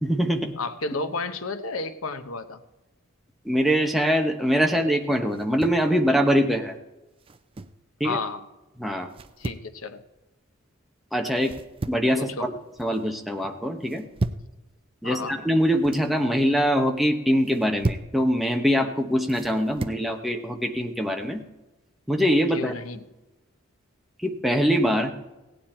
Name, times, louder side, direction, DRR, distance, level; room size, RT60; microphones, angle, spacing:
voice 1, 0.0-0.5 3.4-6.7 8.0-8.2 8.8-9.1 11.1-11.5 11.9-12.5 12.8-14.1 15.0-21.4 22.1-22.7 24.2-25.1, equal, ahead, 3 dB, 1.0 m, -23 dB
voice 2, 0.6-2.6 8.0-8.4 9.4-10.0 12.2-12.5 15.0-15.4 22.5-23.0, left 3 dB, 90° left, 10 dB, 1.0 m, -32 dB
sound 1, 5.3-5.9 7.2-7.8 9.1-9.7 11.4-12.2 12.5-13.0 13.9-14.5 15.6-16.1 17.4-18.2 19.3-20.1, right 2 dB, 25° right, 0.4 m, -33 dB
16.5 x 9.4 x 4.4 m, 1.0 s
head